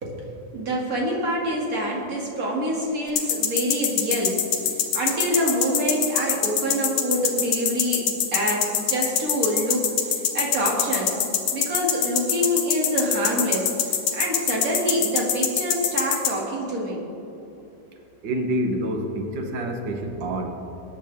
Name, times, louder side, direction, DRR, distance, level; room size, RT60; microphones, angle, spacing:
voice 1, 0.0-11.2 11.5-17.0, equal, 30° right, -3 dB, 2.4 m, -26 dB
sound 1, 3.2-16.3, left 8 dB, 70° left, 2.4 m, -23 dB
voice 2, 18.2-20.5, right 1 dB, 90° right, 4 dB, 1.0 m, -27 dB
22.0 x 9.8 x 3.5 m, 2.9 s
omnidirectional pair, 3.5 m